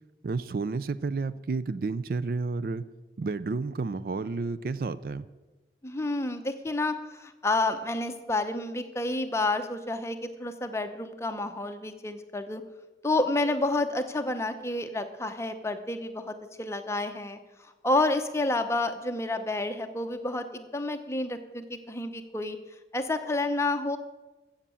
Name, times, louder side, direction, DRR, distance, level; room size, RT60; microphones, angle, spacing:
voice 1, 0.2-2.9 3.2-5.3, right 4 dB, 55° right, 16 dB, 0.4 m, -31 dB
voice 2, 5.8-12.6 13.0-17.4 17.8-22.6 22.9-24.0, left 2 dB, 15° left, 7 dB, 0.8 m, -29 dB
15.0 x 7.3 x 6.9 m, 1.2 s
head